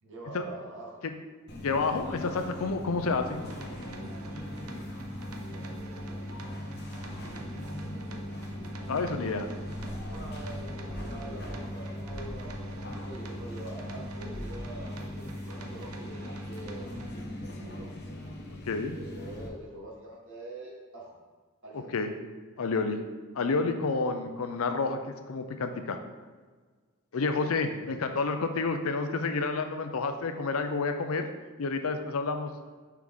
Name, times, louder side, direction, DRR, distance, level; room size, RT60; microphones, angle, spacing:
voice 1, 0.0-1.0 2.2-2.5 5.3-6.3 10.1-17.9 18.9-21.2 21.6-22.0 27.5-28.2, right 1 dB, 60° right, -3 dB, 1.6 m, -46 dB
sound 1, 1.5-19.5, left 1 dB, 50° left, 1.0 m, -39 dB
voice 2, 1.6-3.4 8.9-9.5 18.7-19.0 21.9-22.1 22.6-23.0 23.3-26.0 27.1-31.3 31.6-32.5, left 4 dB, 70° left, 7 dB, 0.5 m, -29 dB
sound 2, 3.4-17.1, right 3 dB, 90° right, 0.7 m, -48 dB
6.0 x 4.7 x 3.6 m, 1.4 s
head